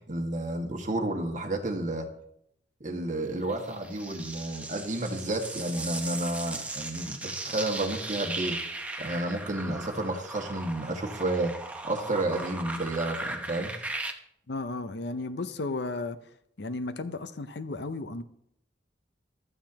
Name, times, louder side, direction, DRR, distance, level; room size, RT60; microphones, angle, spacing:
voice 1, 0.0-2.1 2.8-8.6 9.0-11.5 11.8-13.7, right 2 dB, 40° right, 1.8 m, -31 dB
sound 1, 3.5-14.1, right 2 dB, 10° right, 0.9 m, -37 dB
voice 2, 14.5-16.2 16.6-18.2, left 2 dB, 65° left, 0.7 m, -34 dB
15.0 x 12.5 x 2.9 m
head